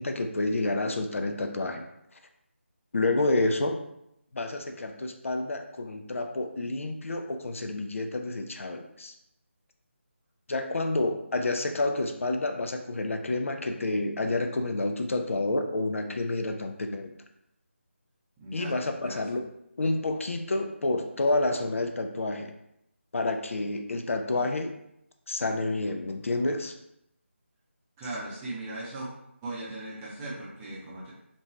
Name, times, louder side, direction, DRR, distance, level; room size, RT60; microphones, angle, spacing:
voice 1, 0.0-1.8 2.9-3.8 4.3-9.1 10.5-17.1 18.5-19.5 19.8-22.5 23.1-24.7 25.3-26.7, left 2 dB, 75° left, 5 dB, 0.4 m, -29 dB
voice 2, 18.4-19.2 28.0-29.1 29.4-31.1, right 2 dB, 10° right, -7 dB, 0.4 m, -38 dB
2.6 x 2.2 x 3.0 m, 0.80 s
figure-of-eight pair, 160°, 7 cm